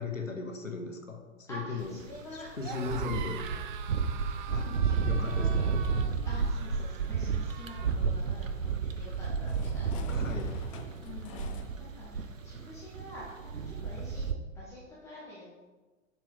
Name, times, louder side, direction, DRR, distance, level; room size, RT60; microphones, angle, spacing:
voice 1, 0.0-1.9 2.3-3.4 4.5-4.7 5.1-5.6 10.1-10.5, left 4 dB, 90° left, 4 dB, 1.0 m, -37 dB
voice 2, 1.5-3.2 4.5-5.9 6.2-10.6 11.0-14.2 14.5-15.6, left 1 dB, 5° left, -9 dB, 1.5 m, -47 dB
sound 1, 1.8-14.3, right 5 dB, 90° right, 0.6 m, -32 dB
sound 2, 2.5-8.0, right 8 dB, 40° right, 0.5 m, -44 dB
sound 3, 4.9-11.7, left 6 dB, 25° left, 0.4 m, -52 dB
6.8 x 4.4 x 3.6 m, 1.2 s
figure-of-eight pair, 105°, 38 cm